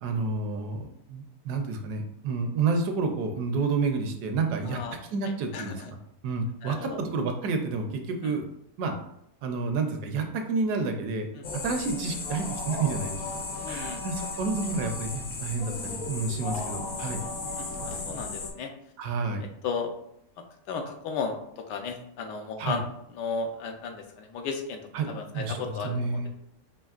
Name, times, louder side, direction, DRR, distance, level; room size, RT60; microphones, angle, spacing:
voice 1, 0.0-6.0 6.2-8.4 8.8-8.9 9.4-11.3 11.6-13.2 13.7-15.1 15.4-17.2 17.9-18.3 19.0-19.4 22.6-22.8 24.9-26.3, right 4 dB, 75° right, 5 dB, 1.1 m, -30 dB
voice 2, 4.7-5.0 5.5-5.9 6.6-7.0 8.2-8.3 11.3-11.4 13.6-14.0 17.6-18.7 19.6-19.9 20.7-22.9 23.1-24.8 25.1-26.3, left 5 dB, 85° left, 4 dB, 1.3 m, -34 dB
sound 1, 11.4-18.5, left 3 dB, 60° left, 0.9 m, -35 dB
5.1 x 2.9 x 2.4 m, 0.75 s
omnidirectional pair, 1.8 m